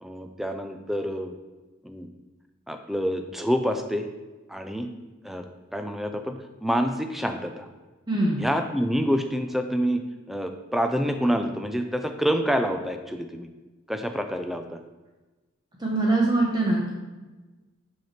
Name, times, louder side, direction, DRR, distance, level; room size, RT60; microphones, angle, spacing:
voice 1, 0.0-1.4 1.8-2.1 2.7-4.1 4.5-4.9 5.2-5.5 5.7-7.7 8.4-10.0 10.3-13.5 13.9-14.8, equal, ahead, 6 dB, 0.4 m, -27 dB
voice 2, 8.1-8.4 15.8-16.9, right 2 dB, 20° right, -3 dB, 0.9 m, -23 dB
6.0 x 5.8 x 4.4 m, 1.2 s
head